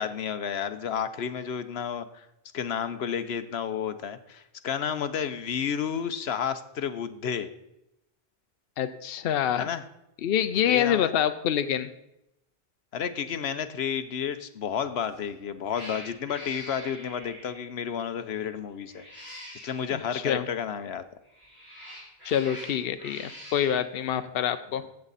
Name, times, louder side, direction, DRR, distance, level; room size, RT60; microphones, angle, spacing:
voice 1, 0.0-2.3 2.5-7.5 9.5-9.8 10.7-11.1 12.9-19.0 19.6-21.0, left 7 dB, 90° left, 11 dB, 1.0 m, -31 dB
voice 2, 8.8-9.7 10.2-11.9 20.1-20.4 22.2-24.8, left 9 dB, 70° left, 10 dB, 0.8 m, -26 dB
Cat, 15.0-15.3 15.7-17.7 18.8-19.9 21.2-23.8, equal, 45° right, 4.8 m, -44 dB
15.5 x 7.7 x 4.1 m, 0.86 s
omnidirectional pair, 1.0 m